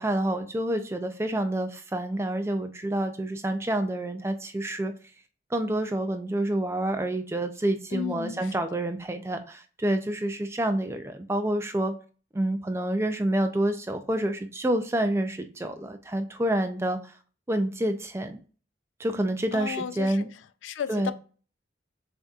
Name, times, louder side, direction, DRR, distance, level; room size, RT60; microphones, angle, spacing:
voice 1, 0.0-4.9 5.5-11.9 12.3-17.1 17.5-18.4 19.0-20.3 20.9-21.1, right 1 dB, 15° right, 0.4 m, -28 dB
voice 2, 7.9-8.5 19.5-20.3 20.6-21.1, left 7 dB, 85° left, 0.4 m, -33 dB
7.0 x 2.7 x 2.3 m
head